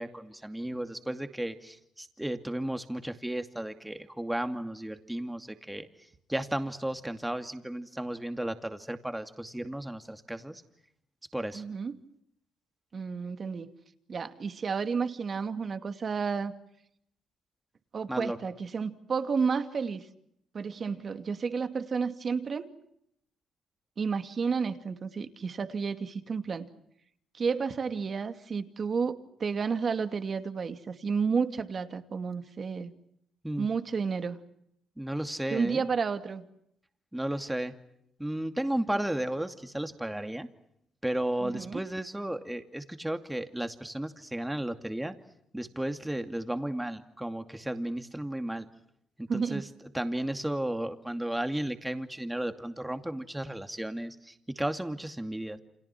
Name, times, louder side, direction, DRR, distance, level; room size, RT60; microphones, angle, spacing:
voice 1, 0.0-5.9 6.3-10.6 11.3-11.6 18.1-18.4 33.4-33.7 35.0-35.8 37.1-37.7 38.2-40.5 41.0-45.2 45.5-48.7 49.2-49.6 49.9-55.6, right 1 dB, 5° right, 7 dB, 2.6 m, -34 dB
voice 2, 11.5-11.9 12.9-13.7 14.1-16.5 17.9-20.1 20.5-22.7 24.0-26.7 27.3-32.9 33.6-34.4 35.5-36.5 41.4-41.8 49.3-49.6, right 5 dB, 45° right, 8 dB, 2.5 m, -31 dB
30.0 x 27.0 x 6.1 m, 0.74 s
cardioid pair, 90°, 0 cm